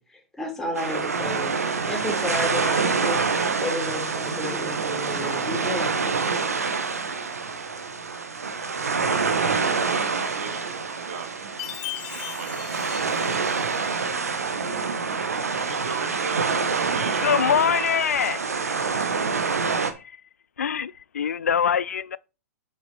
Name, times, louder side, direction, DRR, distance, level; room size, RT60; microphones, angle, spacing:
voice 1, 0.0-5.9, left 1 dB, 5° left, 3.1 m, -32 dB
sound 1, 0.8-19.9, right 5 dB, 80° right, 1.3 m, -26 dB
voice 2, 9.7-12.5 12.9-13.2 14.1-15.1 15.6-17.5, right 6 dB, 55° right, 1.7 m, -38 dB
Chime, 11.6-14.1, left 16 dB, 40° left, 0.9 m, -38 dB
voice 3, 17.2-19.0 19.9-20.0 20.6-22.2, left 7 dB, 70° left, 0.5 m, -24 dB
7.6 x 6.2 x 4.3 m
figure-of-eight pair, 110°, 8 cm